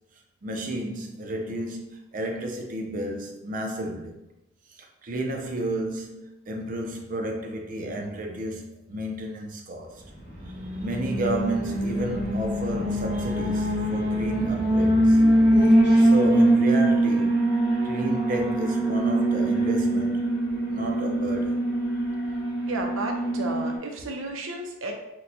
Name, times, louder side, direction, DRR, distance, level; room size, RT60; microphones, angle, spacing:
voice 1, 0.4-4.2 4.8-10.0 10.8-15.2 16.0-20.3 20.7-21.6, right 1 dB, 45° right, 0.5 m, -31 dB
Alarm, 10.3-23.8, right 1 dB, 55° left, 1.0 m, -23 dB
voice 2, 22.7-24.9, right 2 dB, 90° right, 0.6 m, -32 dB
4.2 x 2.2 x 2.6 m
head